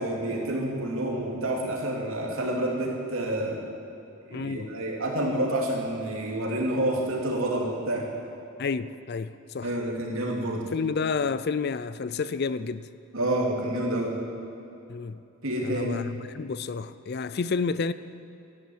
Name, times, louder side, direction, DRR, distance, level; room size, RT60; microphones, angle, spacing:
voice 1, 0.0-3.6 4.3-8.1 9.6-10.7 13.1-14.2 15.4-16.1, right 1 dB, 65° right, -1 dB, 3.0 m, -28 dB
voice 2, 4.3-4.7 8.6-9.7 10.7-12.9 14.9-15.2 15.6-17.9, left 5 dB, 45° left, 15 dB, 0.4 m, -30 dB
13.5 x 10.5 x 8.6 m, 2.9 s
head